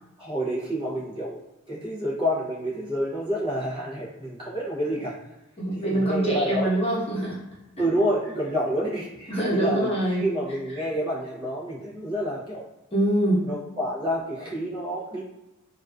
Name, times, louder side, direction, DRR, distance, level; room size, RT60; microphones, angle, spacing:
voice 1, 0.2-1.4 1.7-5.2 5.7-6.7 7.8-9.9 10.2-12.6 13.4-15.2, equal, 20° right, -7 dB, 0.5 m, -28 dB
voice 2, 5.6-7.4 9.3-10.3 12.9-13.4, right 1 dB, 25° left, -7 dB, 0.9 m, -24 dB
2.3 x 2.3 x 2.2 m, 0.93 s
head